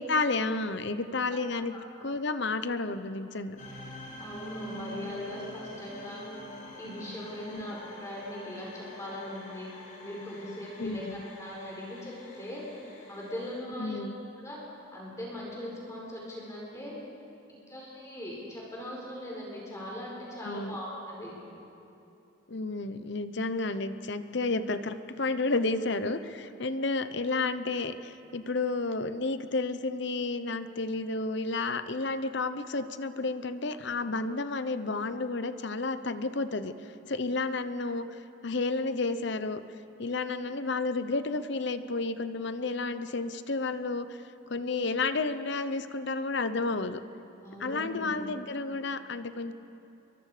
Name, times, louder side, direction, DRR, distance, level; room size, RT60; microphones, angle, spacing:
voice 1, 0.0-1.7 2.0-3.6 7.5-7.6 10.8-11.2 13.8-14.2 20.4-20.8 22.5-36.7 37.1-39.6 40.0-44.2 44.5-47.0 47.6-49.5, left 3 dB, 55° left, 11 dB, 0.9 m, -31 dB
sound 1, 3.6-13.6, equal, 35° left, 3.9 m, -46 dB
voice 2, 4.2-6.2 6.8-9.7 10.0-12.6 13.1-14.1 14.4-14.6 14.9-16.9 17.5-21.4 47.4-48.2, left 1 dB, 15° left, -4 dB, 4.8 m, -40 dB
29.0 x 23.5 x 5.1 m, 2.8 s
head